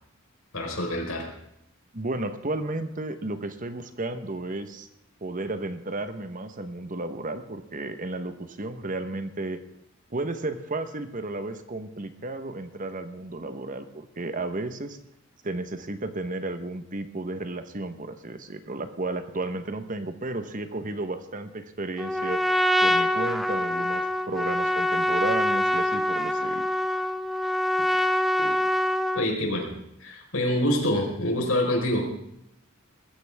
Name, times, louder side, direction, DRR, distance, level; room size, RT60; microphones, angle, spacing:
voice 1, 0.5-1.3 28.4-28.6 29.1-29.7 30.0-32.1, left 1 dB, 75° left, 1 dB, 4.5 m, -26 dB
voice 2, 1.9-4.9 5.2-9.6 10.1-15.0 15.4-22.4 22.8-26.6, right 2 dB, 40° right, 9 dB, 1.2 m, -33 dB
Trumpet, 22.0-29.3, left 1 dB, ahead, 0.6 m, -25 dB
21.0 x 15.0 x 3.6 m, 0.80 s
head